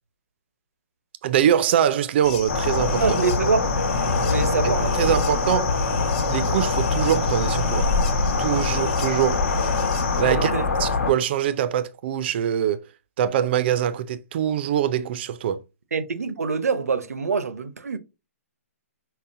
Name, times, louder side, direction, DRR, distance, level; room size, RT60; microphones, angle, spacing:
voice 1, 1.2-3.2 4.6-5.7 6.3-7.9 8.4-9.4 10.2-10.5 10.8-12.8 13.2-15.6, right 9 dB, 45° right, 0.4 m, -23 dB
sound 1, 2.2-10.2, left 4 dB, 30° left, 1.2 m, -32 dB
sound 2, 2.5-11.1, left 3 dB, 70° left, 1.0 m, -24 dB
voice 2, 2.9-3.6 4.2-5.1 10.3-10.7 15.9-18.0, right 5 dB, 90° right, 0.7 m, -25 dB
5.6 x 2.1 x 2.5 m
hypercardioid pair, 150°, 8 cm